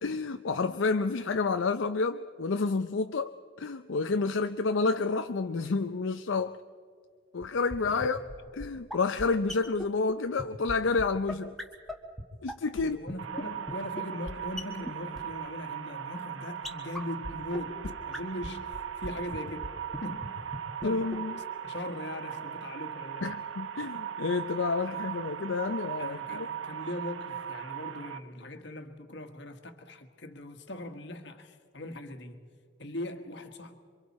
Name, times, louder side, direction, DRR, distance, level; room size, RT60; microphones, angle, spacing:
voice 1, 0.0-6.6 7.3-8.2 8.5-11.6 12.4-13.0 20.8-21.4 23.2-26.5, left 4 dB, 75° left, 0.6 m, -29 dB
sound 1, 7.4-7.5 7.7-7.8 8.0-8.1 8.3-8.4 8.6-8.7 8.9-9.0 9.2-9.3 9.5-9.6 9.8-9.9 10.1-10.2 10.4-10.5 10.7-10.8 11.0-11.1 11.3-11.4 11.6-11.7 11.9-12.0 12.2-12.3 12.5-12.8 13.1-13.2 13.4-13.5 13.7-13.8 14.0-14.1 14.3-14.4 14.6-14.7 14.9-15.0 15.2-15.3 16.6-16.7 16.9-17.0 17.2-17.3 17.5-17.6 17.8-17.9 18.1-18.2 18.4-18.5 18.7-19.1 19.3-19.4 19.6-19.7 19.9-20.0 20.2-20.3 20.5-20.6 20.8-20.9 21.1-21.2, left 1 dB, ahead, 1.5 m, -36 dB
voice 2, 7.8-8.2 12.7-20.4 20.8-21.3 21.6-23.3 24.9-25.0 26.0-32.4 32.8-33.7, left 1 dB, 60° left, 1.5 m, -40 dB
sound 2, 13.2-28.2, right 9 dB, 80° right, 1.0 m, -39 dB
27.5 x 24.5 x 4.2 m
head